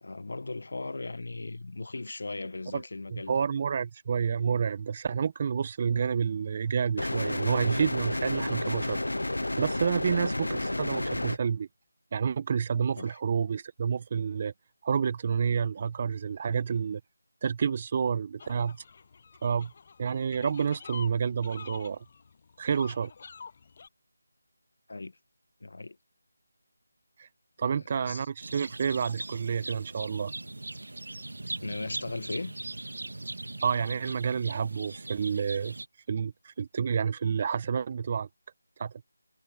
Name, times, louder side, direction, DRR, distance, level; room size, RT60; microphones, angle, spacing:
voice 1, 0.0-3.4 10.1-10.3 13.0-13.2 24.9-25.2 25.6-26.0 27.6-27.7 28.0-28.3 31.6-32.5, left 3 dB, 65° left, 1.0 m, -38 dB
voice 2, 3.1-9.0 9.6-11.7 12.1-14.5 14.8-17.0 17.4-18.8 19.4-19.7 20.0-22.0 22.6-23.1 27.2-27.3 27.6-30.3 33.6-35.8 36.1-38.3 38.8-38.9, right 6 dB, 30° right, 0.8 m, -29 dB
sound 1, 7.0-11.4, left 1 dB, 90° left, 0.3 m, -31 dB
sound 2, 18.4-23.9, left 5 dB, 40° left, 7.9 m, -47 dB
sound 3, 28.4-35.9, right 2 dB, 75° right, 1.8 m, -40 dB
figure-of-eight pair, 165°, 0 cm